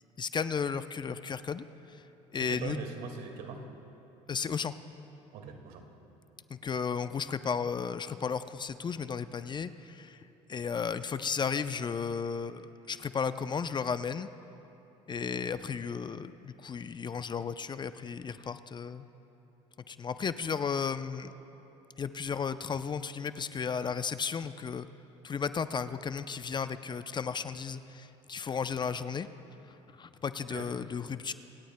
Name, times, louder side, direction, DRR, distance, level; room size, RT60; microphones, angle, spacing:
voice 1, 0.2-1.6 1.9-2.0 2.3-2.8 4.3-4.7 6.5-10.2 10.5-14.3 15.1-19.1 19.9-21.3 22.0-24.9 25.2-29.3 30.0-31.3, left 6 dB, 30° left, 12 dB, 0.5 m, -34 dB
voice 2, 2.3-3.7 5.3-5.9 30.4-30.7, right 5 dB, 70° right, 3 dB, 2.0 m, -41 dB
26.5 x 17.0 x 2.2 m, 2.9 s
hypercardioid pair, 75°, 15 cm